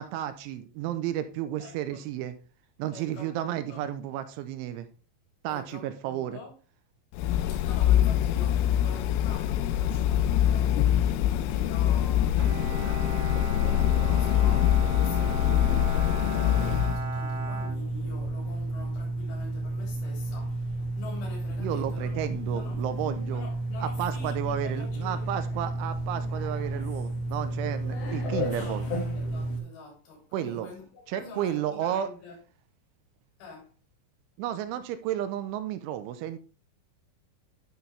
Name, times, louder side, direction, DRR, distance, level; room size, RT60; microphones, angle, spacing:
voice 1, 0.0-2.3 2.8-4.9 5.4-6.4 21.6-23.4 23.8-28.9 30.3-30.7 31.1-32.1 34.4-36.4, right 11 dB, 85° right, 3.0 m, -32 dB
voice 2, 1.6-2.0 2.9-3.8 5.5-6.6 7.5-22.2 22.5-22.9 23.3-25.4 28.3-32.4 33.4-33.7, left 3 dB, 70° left, 5.9 m, -46 dB
sound 1, 7.1-17.0, left 11 dB, 90° left, 3.2 m, -24 dB
Bowed string instrument, 12.4-18.5, right 4 dB, 65° right, 3.5 m, -37 dB
sound 2, 16.5-29.6, right 1 dB, 50° left, 1.9 m, -32 dB
11.5 x 6.1 x 3.4 m
omnidirectional pair, 5.6 m